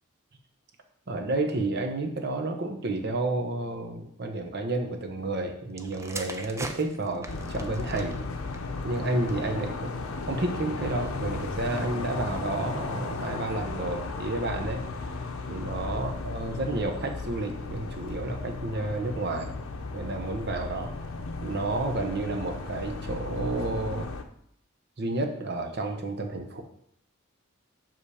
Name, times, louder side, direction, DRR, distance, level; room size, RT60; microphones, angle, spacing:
voice 1, 1.1-8.2 8.8-9.9 10.3-14.8 15.5-19.5 19.9-20.9 21.4-24.1 25.0-26.6, right 2 dB, 50° right, 4 dB, 0.9 m, -31 dB
sound 1, 5.7-9.5 10.3-10.6, right 2 dB, 15° right, 0.5 m, -42 dB
sound 2, 7.3-24.2, left 3 dB, 85° left, 0.7 m, -35 dB
5.7 x 5.5 x 4.9 m, 0.70 s
head